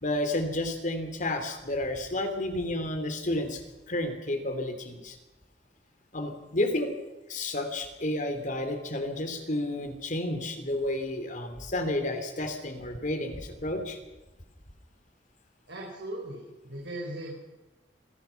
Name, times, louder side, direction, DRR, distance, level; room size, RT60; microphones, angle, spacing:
voice 1, 0.0-3.6 3.9-5.2 6.1-6.9 7.3-14.0, left 1 dB, 45° left, 7 dB, 3.2 m, -31 dB
voice 2, 15.7-17.3, right 1 dB, 90° right, -3 dB, 5.5 m, -38 dB
26.0 x 17.5 x 5.9 m, 1.1 s
head